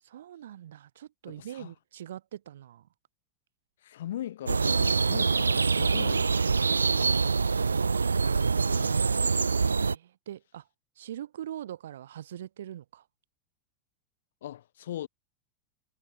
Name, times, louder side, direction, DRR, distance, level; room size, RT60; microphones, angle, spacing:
voice 1, 0.0-2.9 6.9-7.1 9.8-10.7 11.0-13.1, right 11 dB, 70° right, 6.0 m, -43 dB
voice 2, 1.3-1.7 3.8-6.6 8.6-9.2 14.4-15.1, left 12 dB, 70° left, 6.4 m, -40 dB
sound 1, 4.5-10.0, right 4 dB, 85° right, 2.3 m, -25 dB
figure-of-eight pair, 90°, 0 cm